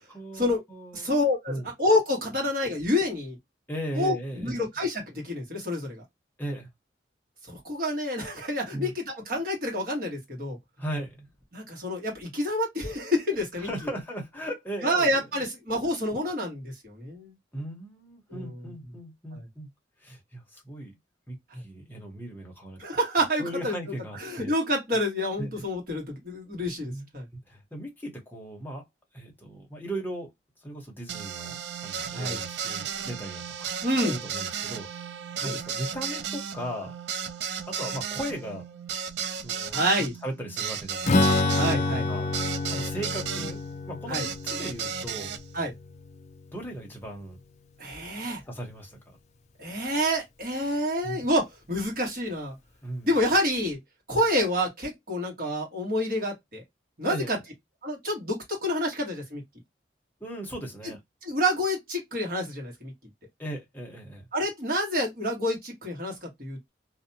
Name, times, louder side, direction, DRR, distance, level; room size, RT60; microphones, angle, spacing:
voice 1, 0.1-1.1 1.5-1.7 3.7-4.6 6.4-6.7 8.7-8.9 10.8-11.3 13.6-15.4 17.5-19.7 20.0-20.9 21.3-22.8 23.4-24.5 25.4-25.5 26.8-27.1 27.3-28.8 29.1-30.3 30.6-33.7 34.0-35.1 35.4-36.9 37.7-38.6 39.4-39.9 40.2-41.5 41.9-42.3 42.7-43.6 43.9-45.3 46.5-47.4 48.4-49.0 51.0-51.3 52.8-53.1 54.1-54.2 57.1-57.4 60.2-61.0 63.4-64.2, right 1 dB, 10° left, 0.9 m, -37 dB
voice 2, 0.9-3.4 3.9-6.0 7.5-10.6 11.5-13.7 14.8-17.3 18.3-18.5 19.3-19.4 21.5-21.6 22.8-23.7 24.2-27.2 32.1-32.4 33.8-34.1 35.4-35.5 39.7-40.1 41.5-42.1 44.1-44.2 45.5-45.7 47.8-48.4 49.6-52.5 53.0-53.8 54.1-56.6 57.0-57.4 57.8-59.4 60.8-60.9 61.2-62.9 64.3-66.7, equal, 50° right, 1.3 m, -28 dB
sound 1, 31.1-43.5 44.1-45.4, right 7 dB, 70° right, 0.3 m, -34 dB
Strum, 41.0-46.7, left 2 dB, 40° left, 0.4 m, -28 dB
2.6 x 2.2 x 2.7 m
head